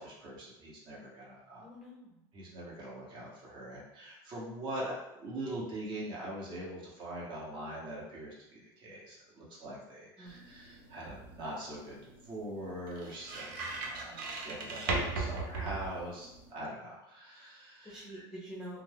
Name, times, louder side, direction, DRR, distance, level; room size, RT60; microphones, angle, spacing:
voice 1, 0.0-1.6 2.3-12.0 12.3-18.2, right 1 dB, 45° right, -5 dB, 1.1 m, -43 dB
voice 2, 1.6-2.2 10.2-10.3 14.1-14.6 17.8-18.8, right 1 dB, 5° right, -7 dB, 0.7 m, -47 dB
sound 1, 10.3-16.5, right 3 dB, 80° right, 0.7 m, -39 dB
2.4 x 2.3 x 3.4 m, 0.89 s
supercardioid pair, 125°, 11 cm